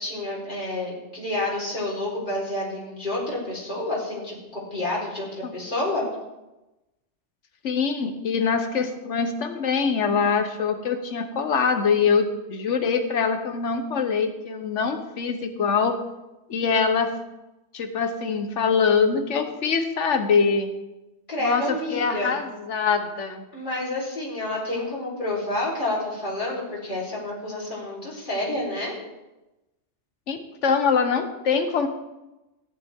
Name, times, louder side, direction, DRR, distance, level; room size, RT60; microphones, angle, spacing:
voice 1, 0.0-6.1 21.3-22.4 23.5-29.0, left 1 dB, 45° left, -7 dB, 4.2 m, -29 dB
voice 2, 7.6-16.0 16.5-17.1 17.7-20.7 21.4-23.4 30.3-31.9, left 5 dB, 90° left, 8 dB, 1.3 m, -24 dB
14.5 x 10.5 x 3.6 m, 1.0 s
omnidirectional pair, 1.2 m